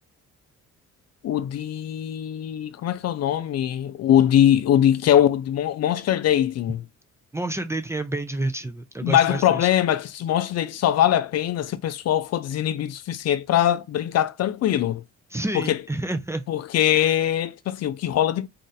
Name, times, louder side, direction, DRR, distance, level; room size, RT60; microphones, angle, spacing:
voice 1, 1.2-6.9 9.0-15.0 15.5-15.8 16.5-18.5, left 11 dB, 55° left, 0.4 m, -22 dB
voice 2, 7.3-9.7 15.3-16.4 16.9-17.1, right 2 dB, 10° right, 0.4 m, -29 dB
2.5 x 2.5 x 4.0 m
cardioid pair, 90°, 30 cm